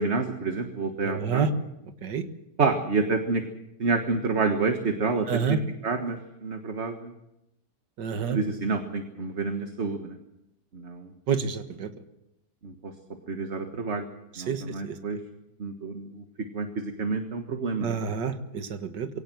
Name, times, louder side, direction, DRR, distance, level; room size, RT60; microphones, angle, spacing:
voice 1, 0.0-1.5 2.6-3.4 3.8-7.1 8.3-10.2 10.7-11.1 12.6-12.9 13.3-14.0 14.4-15.2 15.6-16.2 16.5-18.0, right 4 dB, 40° right, 6 dB, 1.7 m, -28 dB
voice 2, 1.1-1.5 2.0-2.2 5.3-5.6 8.0-8.4 11.3-11.9 14.5-14.9 17.8-19.1, right 6 dB, 80° right, 9 dB, 2.1 m, -28 dB
22.5 x 17.5 x 7.9 m, 0.86 s
omnidirectional pair, 1.8 m